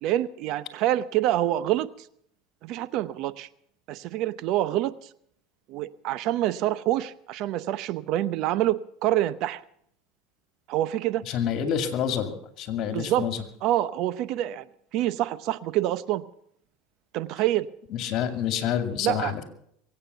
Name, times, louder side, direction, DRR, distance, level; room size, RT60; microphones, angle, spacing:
voice 1, 0.0-1.9 2.6-3.5 3.9-4.9 5.7-9.6 10.7-11.2 12.9-13.3 13.6-14.6 14.9-16.2 17.1-17.7 19.0-19.3, right 14 dB, 55° right, 16 dB, 0.7 m, -26 dB
voice 2, 11.3-13.4 17.9-19.5, left 9 dB, 50° left, 8 dB, 2.4 m, -28 dB
22.5 x 8.8 x 6.9 m, 0.69 s
supercardioid pair, 115°, 0 cm